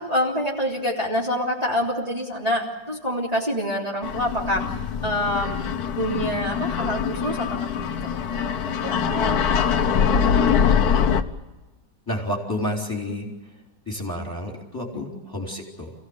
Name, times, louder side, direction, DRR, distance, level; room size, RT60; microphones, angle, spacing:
voice 1, 0.0-4.7 5.0-5.6 5.9-10.5 13.1-13.2 14.9-15.1, equal, 20° right, -4 dB, 3.5 m, -27 dB
sound 1, 4.0-11.2, left 7 dB, 60° left, 1.4 m, -23 dB
voice 2, 12.1-13.3 13.9-15.9, left 1 dB, 10° left, -1 dB, 3.9 m, -30 dB
28.5 x 17.0 x 8.1 m, 1.1 s
omnidirectional pair, 1.9 m